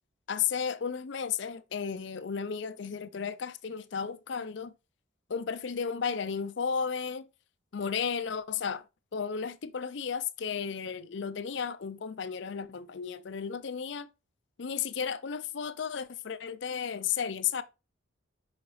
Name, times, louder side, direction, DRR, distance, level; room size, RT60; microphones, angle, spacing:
voice 1, 0.3-4.7 5.3-7.3 7.7-8.8 9.1-14.1 14.6-17.6, left 6 dB, 60° left, 0.5 m, -33 dB
5.7 x 5.3 x 3.1 m
head